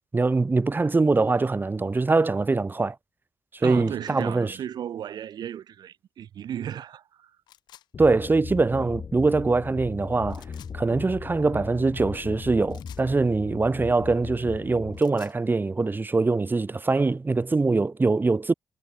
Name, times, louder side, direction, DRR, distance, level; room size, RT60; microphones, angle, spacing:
voice 1, 0.1-3.0 3.5-4.6 8.0-10.4 10.7-18.5, right 3 dB, 25° right, 0.8 m, -23 dB
voice 2, 3.6-7.3, right 10 dB, 70° right, 2.1 m, -35 dB
sound 1, 7.5-7.9 10.3-10.7 12.7-13.1 14.8-15.4, left 12 dB, 75° left, 4.4 m, -51 dB
sound 2, 7.9-15.0, left 6 dB, 55° left, 3.3 m, -38 dB
hypercardioid pair, 45°, 7 cm